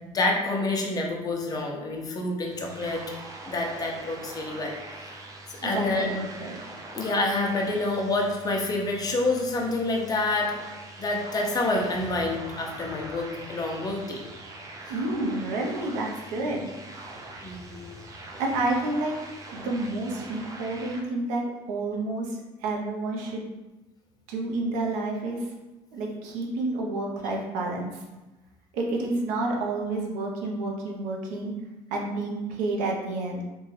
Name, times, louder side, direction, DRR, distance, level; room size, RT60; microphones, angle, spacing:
voice 1, 0.0-3.0 3.5-4.7 5.6-6.2 6.9-10.5 11.0-14.2 17.4-18.0, left 2 dB, 30° left, 0 dB, 0.6 m, -27 dB
sound 1, 2.4-21.0, right 2 dB, 25° right, 0.4 m, -43 dB
voice 2, 5.6-6.5 14.9-16.7 18.4-19.1 19.5-23.5 24.3-25.4 25.9-27.9 28.7-31.5 31.9-33.4, right 2 dB, 80° right, 0 dB, 0.6 m, -29 dB
2.6 x 2.2 x 3.2 m, 1.1 s
supercardioid pair, 90°, 13 cm